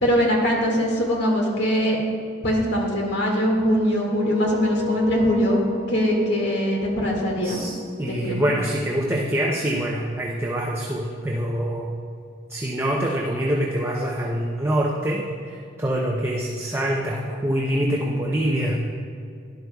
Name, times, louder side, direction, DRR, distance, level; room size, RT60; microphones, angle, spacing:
voice 1, 0.0-2.0 2.4-5.6 5.9-7.6 8.1-8.5, equal, 60° left, -2 dB, 2.0 m, -22 dB
sound 1, 4.0-8.9, left 4 dB, 35° left, 1.8 m, -34 dB
voice 2, 7.4-7.7 8.0-11.9 12.5-18.8, right 1 dB, 15° right, -2 dB, 0.6 m, -25 dB
12.0 x 11.5 x 2.3 m, 2.3 s
head